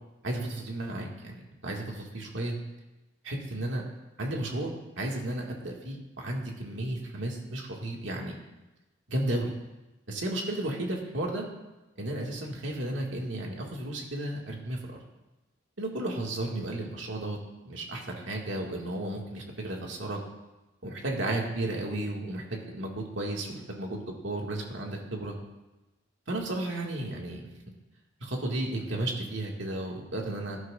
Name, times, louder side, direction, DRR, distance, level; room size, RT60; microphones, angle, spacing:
voice 1, 0.2-2.6 3.2-3.8 4.2-4.7 5.0-8.4 9.1-9.5 10.1-11.4 12.0-14.8 15.8-17.4 17.7-20.2 20.8-25.4 26.3-27.5 28.2-30.6, right 1 dB, 75° right, -1 dB, 2.1 m, -33 dB
17.5 x 11.0 x 2.6 m, 1.0 s
head